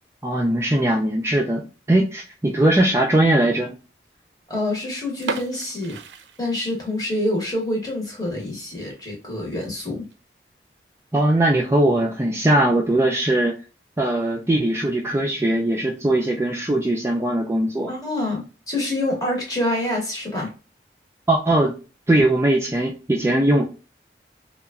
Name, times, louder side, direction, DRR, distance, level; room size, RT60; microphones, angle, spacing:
voice 1, 0.2-1.6 1.9-3.8 11.1-13.6 14.0-17.9 21.3-21.8 22.1-23.6, right 1 dB, 15° right, -1 dB, 0.3 m, -20 dB
voice 2, 4.5-6.0 6.4-10.0 17.9-20.5, left 1 dB, 20° left, -1 dB, 0.9 m, -26 dB
sound 1, 5.2-7.1 7.4-7.5 8.0-8.2 8.6-8.7 9.0-9.1 9.8-10.1, right 4 dB, 90° right, 0.4 m, -33 dB
2.9 x 2.3 x 2.3 m, 0.33 s
head